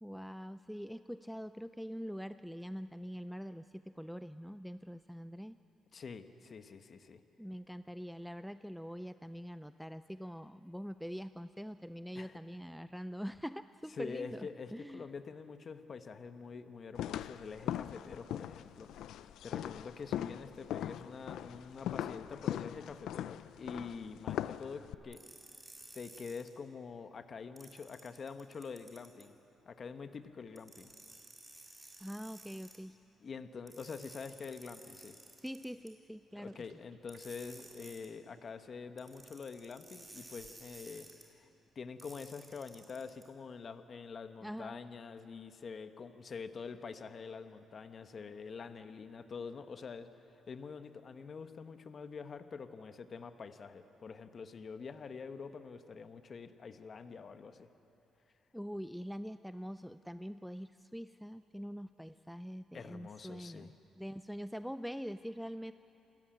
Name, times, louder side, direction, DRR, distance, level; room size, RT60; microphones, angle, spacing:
voice 1, 0.0-5.6 7.4-15.1 32.0-33.0 35.4-36.5 44.4-44.8 58.5-65.7, equal, ahead, 12 dB, 0.4 m, -44 dB
voice 2, 5.9-7.2 12.1-12.4 13.9-18.9 19.4-25.2 25.9-29.4 29.6-30.9 33.2-35.2 36.4-41.1 41.4-41.5 41.7-50.1 50.5-57.7 62.7-63.7, left 5 dB, 45° left, 9 dB, 1.1 m, -46 dB
sound 1, 17.0-24.9, left 11 dB, 80° left, 0.5 m, -40 dB
sound 2, 25.1-26.5 27.6-29.3 30.5-32.8 33.7-35.9 37.1-38.1 39.0-41.2 42.0-43.2, right 2 dB, 15° right, 4.0 m, -55 dB
sound 3, 36.3-38.4, right 6 dB, 70° right, 2.1 m, -64 dB
28.0 x 14.0 x 9.0 m, 3.0 s
cardioid pair, 90°, 0 cm